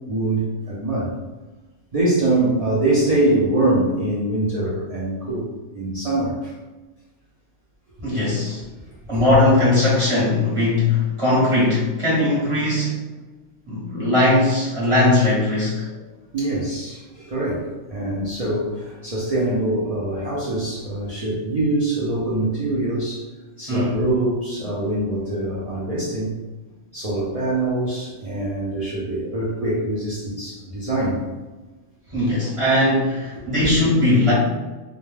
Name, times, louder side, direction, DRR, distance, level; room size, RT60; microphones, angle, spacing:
voice 1, 0.1-1.1 1.9-6.5 9.1-9.2 16.3-23.3 23.6-26.3 26.9-31.2, right 2 dB, 60° right, -7 dB, 0.3 m, -24 dB
voice 2, 8.0-8.6 9.1-13.1 13.7-15.9 23.7-24.0 32.1-34.3, left 2 dB, 25° right, -9 dB, 1.0 m, -19 dB
2.3 x 2.1 x 3.1 m, 1.2 s
omnidirectional pair, 1.3 m